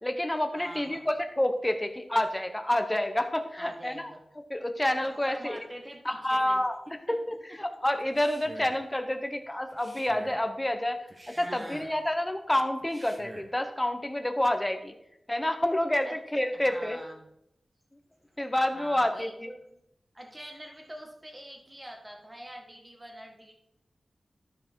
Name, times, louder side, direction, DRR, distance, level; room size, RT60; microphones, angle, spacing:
voice 1, 0.0-4.1 4.5-5.6 6.0-6.7 7.6-14.9 15.3-17.0 18.4-19.5, left 1 dB, 15° left, 7 dB, 0.9 m, -28 dB
voice 2, 0.6-1.1 3.6-4.2 5.0-6.6 6.9-7.3 11.3-12.1 16.0-16.2 16.5-17.3 18.3-18.4 18.7-19.8 20.1-23.5, right 1 dB, 15° right, 1 dB, 1.7 m, -45 dB
Male speech man speaking, 8.0-8.9 9.7-10.5 11.1-12.0 12.8-13.6, right 1 dB, 35° right, 1.2 m, -47 dB
13.0 x 4.9 x 4.5 m, 0.80 s
wide cardioid pair, 115°, 0 cm